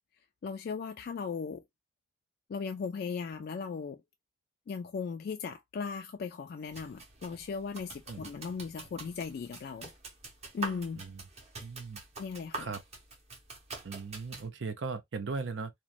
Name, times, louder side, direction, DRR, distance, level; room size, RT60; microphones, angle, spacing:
voice 1, 0.4-1.6 2.5-4.0 4.7-9.9 10.5-11.0 12.2-12.7, left 5 dB, 55° left, 0.3 m, -37 dB
sound 1, 6.7-14.5, right 3 dB, 35° right, 0.8 m, -45 dB
voice 2, 11.6-12.0 12.6-12.8 13.8-15.7, right 4 dB, 75° right, 0.6 m, -38 dB
3.0 x 2.1 x 2.4 m
head